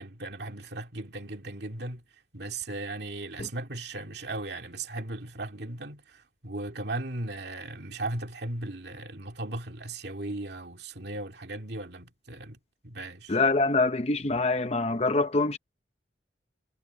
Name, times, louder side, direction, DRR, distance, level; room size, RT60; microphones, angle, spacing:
voice 1, 0.0-2.0 2.3-12.6 12.8-13.4, right 2 dB, 55° right, 2.5 m, -37 dB
voice 2, 13.3-15.6, left 3 dB, 30° left, 0.9 m, -25 dB
head